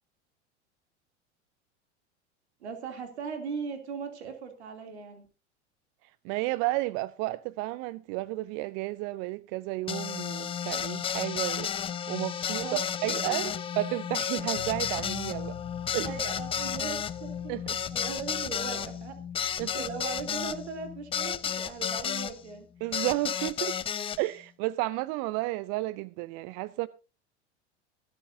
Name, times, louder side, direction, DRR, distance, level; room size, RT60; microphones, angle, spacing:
voice 1, 2.6-5.2 12.6-12.8 13.1-13.5 16.0-17.6 17.9-19.2 19.7-22.7, right 5 dB, 65° right, 2.8 m, -38 dB
voice 2, 6.2-11.7 12.1-13.5 13.8-15.6 15.9-16.2 17.5-17.8 19.6-19.8 22.8-23.8 24.2-26.9, right 19 dB, 40° right, 0.5 m, -32 dB
sound 1, 9.9-22.3 22.9-24.2, left 8 dB, 15° left, 0.5 m, -32 dB
sound 2, 14.6-22.7, left 13 dB, 50° left, 0.9 m, -48 dB
23.5 x 8.5 x 2.7 m
figure-of-eight pair, 80°, 35 cm